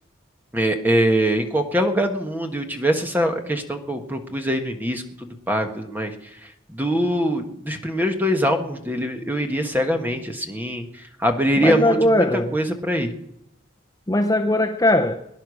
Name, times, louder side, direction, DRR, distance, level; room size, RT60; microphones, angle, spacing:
voice 1, 0.5-6.1 6.7-13.1, equal, 10° right, 1.5 m, -23 dB
voice 2, 11.6-12.5 14.1-15.2, left 1 dB, 15° left, 0.7 m, -19 dB
22.0 x 10.5 x 6.4 m
head